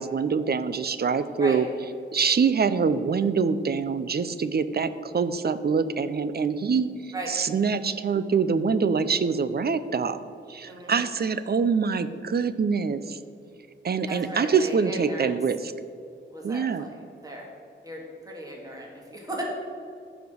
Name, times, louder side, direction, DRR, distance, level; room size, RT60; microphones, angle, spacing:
voice 1, 0.0-1.6 2.1-6.9 7.3-10.2 10.5-13.2 13.8-15.7 16.4-16.8, right 5 dB, 50° right, 13 dB, 0.6 m, -25 dB
voice 2, 10.6-11.0 14.1-15.3 16.3-17.5 17.8-19.4, right 1 dB, 20° right, -2 dB, 2.1 m, -37 dB
15.0 x 5.1 x 6.3 m, 2.4 s
wide cardioid pair, 120°, 20 cm